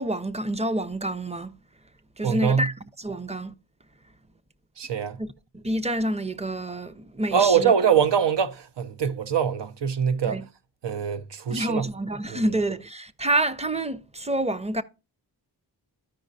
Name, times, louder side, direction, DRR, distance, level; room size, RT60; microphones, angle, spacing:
voice 1, 0.0-1.5 2.2-3.5 5.2-7.7 10.3-10.4 11.5-14.8, right 1 dB, 15° right, 0.5 m, -28 dB
voice 2, 2.2-2.7 4.8-5.2 7.3-10.4 10.8-11.9 12.3-12.4, right 7 dB, 90° right, 0.6 m, -23 dB
13.0 x 5.1 x 2.6 m
wide cardioid pair, 60°, 41 cm